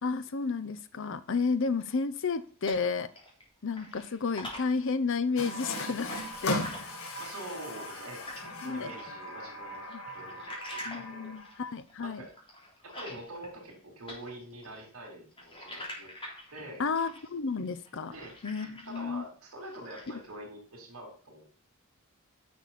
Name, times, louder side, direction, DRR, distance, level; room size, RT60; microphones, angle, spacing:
voice 1, 0.0-3.1 3.6-6.7 8.6-9.0 9.9-10.0 10.8-12.2 16.8-18.1 18.4-19.2 20.1-20.2, left 4 dB, 60° left, 12 dB, 0.7 m, -32 dB
sound 1, 2.2-3.4 3.7-8.6 8.9-13.8 14.1-19.2 19.5-20.3, left 1 dB, 25° left, 3.5 m, -46 dB
Water tap faucet, 5.4-11.7, left 1 dB, 80° left, 2.2 m, -38 dB
voice 2, 7.2-8.2 8.6-9.8 10.1-11.3 12.0-12.3 12.8-16.1 16.5-16.8 18.1-18.3 18.9-21.5, right 1 dB, 75° right, -1 dB, 3.7 m, -45 dB
10.5 x 6.6 x 4.2 m, 0.42 s
head